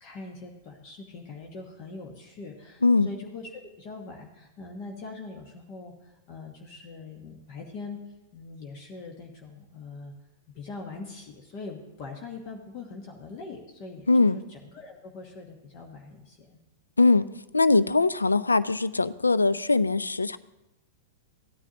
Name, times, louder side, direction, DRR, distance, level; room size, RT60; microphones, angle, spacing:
voice 1, 0.0-10.1 10.5-16.6, left 3 dB, 45° left, 2 dB, 1.2 m, -42 dB
voice 2, 14.1-14.4 17.0-17.3 17.5-20.4, left 3 dB, 90° left, 16 dB, 0.3 m, -21 dB
15.0 x 9.8 x 2.9 m, 0.94 s
figure-of-eight pair, 100°, 0 cm